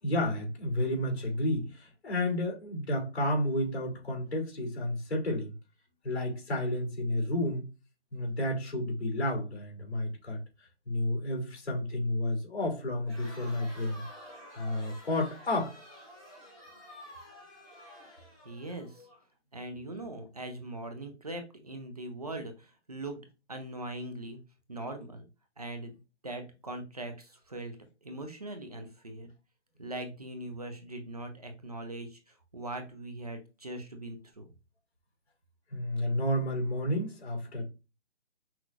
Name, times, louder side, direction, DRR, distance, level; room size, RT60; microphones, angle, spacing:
voice 1, 0.0-5.5 6.0-7.7 8.1-10.4 10.9-14.0 14.5-15.7 35.7-37.6, left 1 dB, 60° left, 2.7 m, -31 dB
Crowd, 13.0-19.2, left 1 dB, ahead, 1.9 m, -50 dB
voice 2, 18.4-19.1 19.5-23.2 23.5-24.4 24.7-25.3 25.6-26.0 26.2-27.8 28.0-29.3 29.8-34.5, right 1 dB, 35° right, 0.7 m, -41 dB
5.9 x 3.0 x 2.4 m
hypercardioid pair, 175°, 35 cm